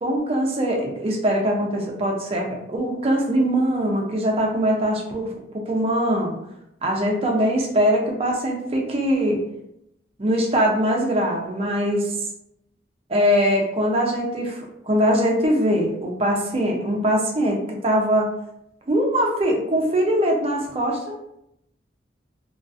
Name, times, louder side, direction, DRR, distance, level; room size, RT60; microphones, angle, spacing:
voice 1, 0.0-6.4 6.8-9.4 10.2-12.2 13.1-18.3 18.9-21.2, equal, 30° right, 1 dB, 0.4 m, -22 dB
2.4 x 2.3 x 2.4 m, 0.81 s
head